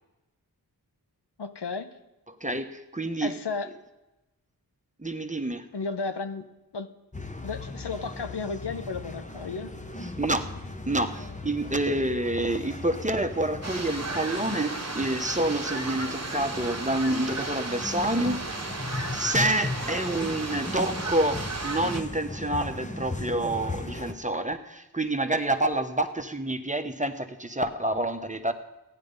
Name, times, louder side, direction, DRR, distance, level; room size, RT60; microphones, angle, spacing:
voice 1, 1.4-1.9 3.2-3.7 5.7-6.9 7.4-9.7, left 4 dB, 80° left, 9 dB, 0.8 m, -33 dB
voice 2, 2.3-3.4 5.0-5.6 10.2-10.5 10.9-18.4 18.9-28.5, right 1 dB, 20° right, 8 dB, 1.0 m, -28 dB
sound 1, 7.1-24.1, left 2 dB, 20° left, 1.0 m, -37 dB
sound 2, 13.6-22.0, right 3 dB, 40° right, 1.1 m, -35 dB
15.0 x 9.9 x 5.4 m, 1.0 s
wide cardioid pair, 45°, 40 cm